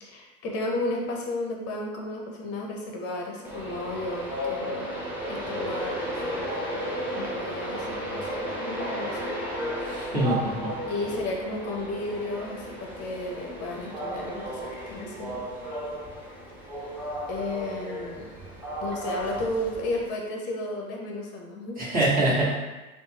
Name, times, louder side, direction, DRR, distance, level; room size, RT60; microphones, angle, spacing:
voice 1, 0.0-4.9 5.3-6.9 7.1-9.3 10.9-15.4 16.7-17.0 17.3-18.3 18.8-21.9, left 2 dB, 35° left, 0 dB, 0.7 m, -33 dB
Train, 3.4-20.1, equal, 5° right, 0.3 m, -34 dB
voice 2, 9.8-10.7 21.8-22.5, right 1 dB, 20° right, -7 dB, 1.0 m, -24 dB
2.5 x 2.0 x 3.2 m, 1.1 s
hypercardioid pair, 100°, 41 cm